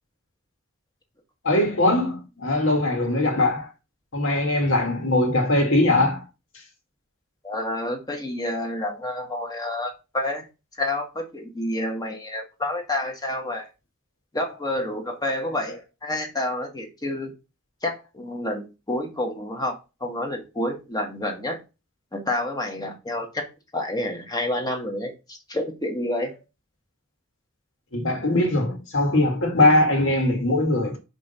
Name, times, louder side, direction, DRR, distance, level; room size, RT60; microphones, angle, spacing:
voice 1, 1.4-3.7 4.1-6.2 14.7-15.0 15.3-15.7 27.9-31.0, left 2 dB, 60° left, 2.1 m, -21 dB
voice 2, 7.4-10.4 10.8-13.7 14.3-17.3 17.8-19.7 20.0-21.6 22.1-23.4 23.7-26.3, left 1 dB, 20° left, 1.4 m, -29 dB
5.4 x 3.9 x 5.6 m
head